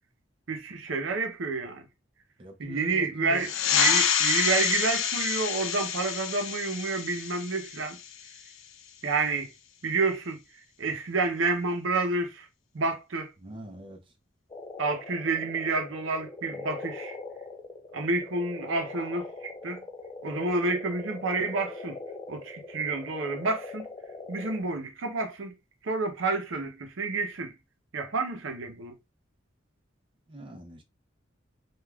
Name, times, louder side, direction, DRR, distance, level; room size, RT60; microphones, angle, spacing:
voice 1, 0.5-1.8 2.6-8.0 9.0-9.5 9.8-10.4 10.8-12.5 12.7-13.3 14.8-17.2 17.9-19.8 20.2-22.0 22.3-23.9 24.3-25.5 25.8-27.5 27.9-28.9, right 3 dB, 85° right, 0.6 m, -29 dB
voice 2, 2.4-3.5 13.4-14.0 30.3-30.8, right 1 dB, 25° right, 0.5 m, -43 dB
sound 1, 3.4-8.5, left 8 dB, 90° left, 0.4 m, -28 dB
sound 2, 14.5-24.6, left 3 dB, 25° left, 0.4 m, -42 dB
3.3 x 2.3 x 2.3 m
head